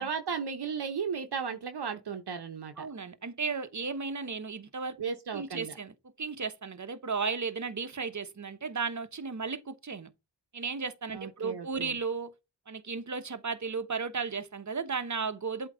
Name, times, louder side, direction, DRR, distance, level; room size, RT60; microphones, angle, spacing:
voice 1, 0.0-2.9 5.0-5.7 11.1-11.9, right 6 dB, 70° right, 1.0 m, -35 dB
voice 2, 2.8-5.0 5.3-10.1 10.5-12.3 12.7-15.7, right 5 dB, 45° right, 1.1 m, -35 dB
8.1 x 3.1 x 5.0 m
cardioid pair, 50°, 41 cm